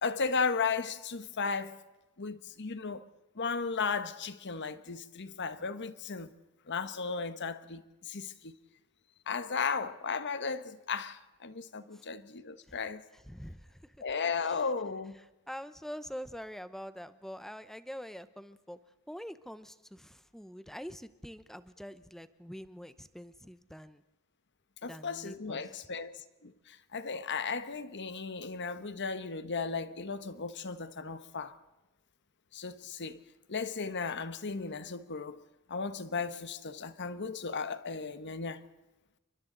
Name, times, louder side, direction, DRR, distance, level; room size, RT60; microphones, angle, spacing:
voice 1, 0.0-1.8 2.2-3.0 3.3-6.3 6.7-8.6 9.3-13.0 14.0-15.2 24.8-31.6 32.5-33.2 33.5-35.4 35.7-38.6, left 5 dB, 55° left, 1.2 m, -35 dB
voice 2, 13.1-14.0 14.4-14.6 15.5-18.8 19.1-24.0 24.8-25.6, equal, ahead, 0.8 m, -45 dB
29.0 x 24.0 x 4.0 m
head